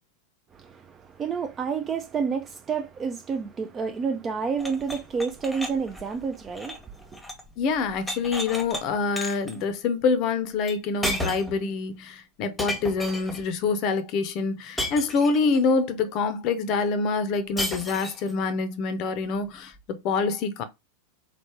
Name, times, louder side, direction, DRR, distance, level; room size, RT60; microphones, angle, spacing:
voice 1, 0.5-7.2, right 5 dB, 20° right, 0.4 m, -30 dB
sound 1, 4.6-7.5 7.8-8.8 9.2-9.6 10.7-10.8 11.0-11.6 12.6-13.5 14.8-15.6 17.6-18.3, left 1 dB, 5° left, 1.0 m, -33 dB
voice 2, 7.6-20.6, left 4 dB, 40° left, 0.6 m, -26 dB
4.0 x 3.2 x 2.9 m
figure-of-eight pair, 90°, 0 cm